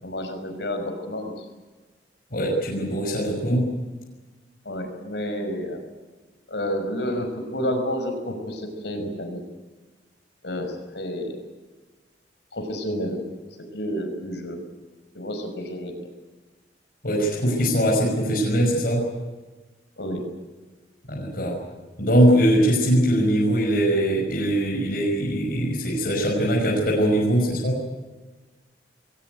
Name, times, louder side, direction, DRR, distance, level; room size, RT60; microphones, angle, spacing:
voice 1, 0.0-1.5 4.7-5.8 6.5-9.4 10.4-11.4 12.5-13.2 13.7-14.6 15.1-15.9 20.0-20.3, equal, 70° left, 7 dB, 5.5 m, -30 dB
voice 2, 2.3-3.7 17.0-19.1 21.1-21.6 22.0-27.8, equal, 55° left, -2 dB, 5.9 m, -21 dB
21.5 x 19.0 x 9.3 m, 1.2 s
head